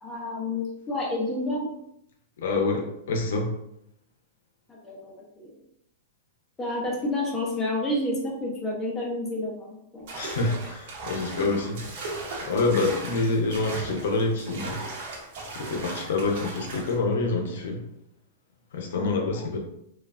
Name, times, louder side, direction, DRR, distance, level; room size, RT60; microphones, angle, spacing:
voice 1, 0.0-1.7 2.5-2.6 4.7-5.5 6.6-10.1 11.4-11.5 18.9-19.4, left 1 dB, 10° left, -4 dB, 0.6 m, -30 dB
voice 2, 2.4-3.6 10.1-11.8 12.3-14.8 15.5-17.8 18.7-19.6, left 3 dB, 75° left, 2 dB, 0.6 m, -27 dB
sound 1, 10.1-17.0, right 2 dB, 45° right, 0.7 m, -38 dB
3.1 x 2.3 x 2.4 m, 0.77 s
supercardioid pair, 170°, 0 cm